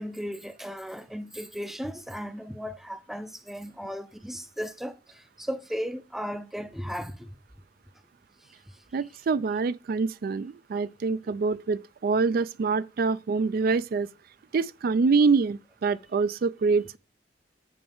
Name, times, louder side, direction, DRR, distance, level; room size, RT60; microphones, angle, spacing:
voice 1, 0.0-7.3 11.3-11.4, equal, ahead, 0.5 m, -36 dB
voice 2, 8.9-14.1 14.5-17.0, right 4 dB, 55° right, 0.4 m, -25 dB
7.0 x 5.7 x 3.9 m
head